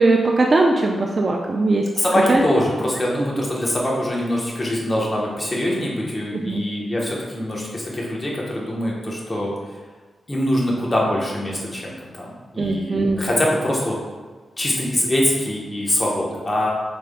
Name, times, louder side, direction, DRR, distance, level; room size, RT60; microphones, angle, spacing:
voice 1, 0.0-1.8 2.3-2.4 3.4-3.5 6.3-6.6 12.6-13.3, right 2 dB, 40° right, 0 dB, 0.4 m, -19 dB
voice 2, 2.0-9.8 10.3-14.0 14.6-16.7, left 1 dB, 25° left, -3 dB, 1.0 m, -23 dB
4.8 x 3.4 x 2.2 m, 1.4 s
cardioid pair, 80°, 0 cm